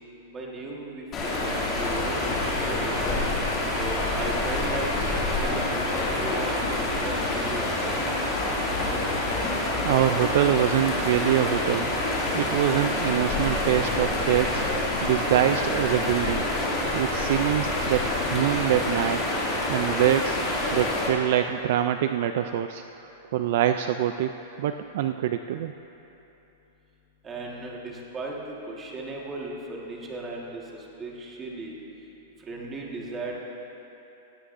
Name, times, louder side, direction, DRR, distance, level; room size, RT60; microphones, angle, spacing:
voice 1, 0.3-1.3 1.7-3.2 3.8-4.9 5.3-6.4 6.9-7.7 27.2-31.8 32.4-33.4, right 2 dB, 15° right, -2 dB, 1.5 m, -36 dB
sound 1, 1.1-21.1, left 2 dB, 20° left, 2.4 m, -27 dB
voice 2, 9.8-11.9 12.3-14.7 15.0-16.5 16.9-19.2 19.7-20.4 20.7-22.8 23.3-24.3 24.6-25.7, right 11 dB, 50° right, 8 dB, 0.3 m, -24 dB
17.0 x 17.0 x 2.6 m, 3.0 s
supercardioid pair, 175°, 0 cm